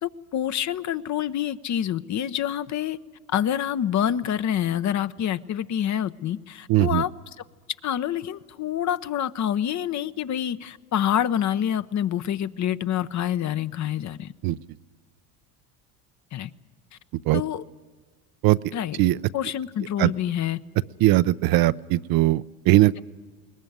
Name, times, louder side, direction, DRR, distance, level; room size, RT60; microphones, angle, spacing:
voice 1, 0.0-3.0 3.3-7.1 7.8-14.3 16.3-16.5 17.3-17.6 18.7-19.0 19.3-20.6, left 10 dB, 40° left, 13 dB, 0.8 m, -27 dB
voice 2, 6.7-7.0 14.4-14.6 17.3-17.4 18.4-18.6 19.0-19.2 20.0-20.1 21.0-23.0, right 17 dB, 55° right, 15 dB, 0.6 m, -19 dB
21.5 x 19.5 x 9.5 m, 1.5 s
supercardioid pair, 90°, 45 cm